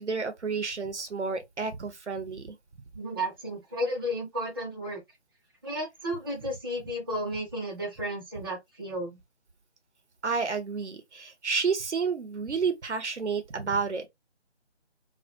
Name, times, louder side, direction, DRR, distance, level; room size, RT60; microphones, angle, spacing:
voice 1, 0.0-2.6 10.2-14.1, right 5 dB, 80° right, 0.8 m, -30 dB
voice 2, 2.9-5.0 5.6-9.2, equal, 20° right, 0.6 m, -33 dB
2.2 x 2.2 x 2.7 m
figure-of-eight pair, 155°, 35 cm